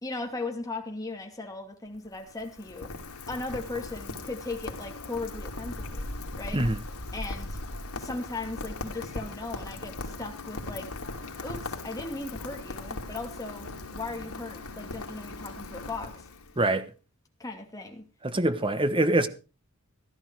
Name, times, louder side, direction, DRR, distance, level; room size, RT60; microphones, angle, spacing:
voice 1, 0.0-2.9 3.3-6.1 6.4-6.6 7.1-7.6 7.9-10.9 11.4-16.3 17.4-18.0, left 3 dB, 15° left, 2.5 m, -37 dB
Rain, 1.9-16.7, left 2 dB, 85° left, 3.0 m, -39 dB
voice 2, 16.6-16.9 18.2-19.3, right 2 dB, 25° right, 1.2 m, -24 dB
15.5 x 12.0 x 4.7 m
head